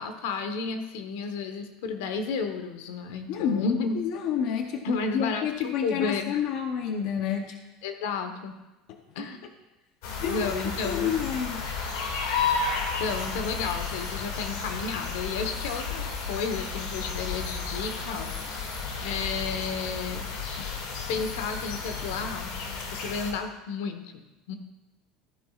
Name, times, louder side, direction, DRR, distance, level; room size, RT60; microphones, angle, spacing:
voice 1, 0.0-4.0 4.8-6.5 7.8-8.5 9.1-9.4 10.3-11.1 13.0-18.7 19.0-20.3 21.1-22.5 22.9-24.5, left 5 dB, 90° left, 7 dB, 1.1 m, -32 dB
voice 2, 3.3-7.5 9.2-9.3 10.2-10.5 10.8-11.6, left 7 dB, 45° left, 5 dB, 0.7 m, -29 dB
sound 1, 10.0-23.3, left 5 dB, 70° left, 2.2 m, -32 dB
13.0 x 9.8 x 2.4 m, 1.0 s
cardioid pair, 180°, 0 cm